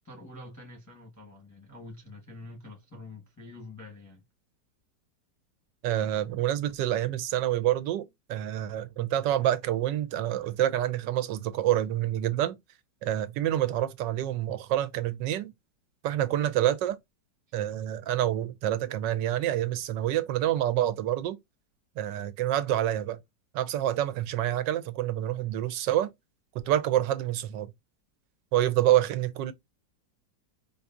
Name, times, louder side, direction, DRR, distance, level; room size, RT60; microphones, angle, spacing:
voice 1, 0.0-4.2 17.5-17.6, left 2 dB, 15° left, 0.6 m, -46 dB
voice 2, 5.8-12.5 13.0-15.5 16.0-17.0 17.5-21.4 22.0-23.2 23.5-26.1 26.5-27.7 28.5-29.5, right 12 dB, 80° right, 1.2 m, -27 dB
4.7 x 2.6 x 2.3 m
omnidirectional pair, 1.9 m